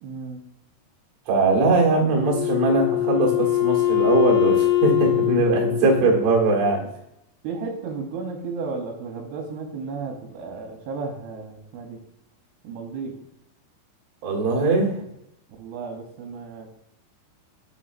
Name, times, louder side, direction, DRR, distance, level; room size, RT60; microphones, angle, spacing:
voice 1, 0.0-0.4 5.7-5.8 7.4-12.0 12.6-13.2 15.6-16.7, right 4 dB, 75° right, 2 dB, 2.7 m, -33 dB
voice 2, 1.3-6.8 14.2-15.0, right 3 dB, 55° right, -1 dB, 2.0 m, -21 dB
Wind instrument woodwind instrument, 2.2-6.7, left 13 dB, 75° left, 3.2 m, -23 dB
7.2 x 6.7 x 2.5 m, 0.81 s
omnidirectional pair, 4.8 m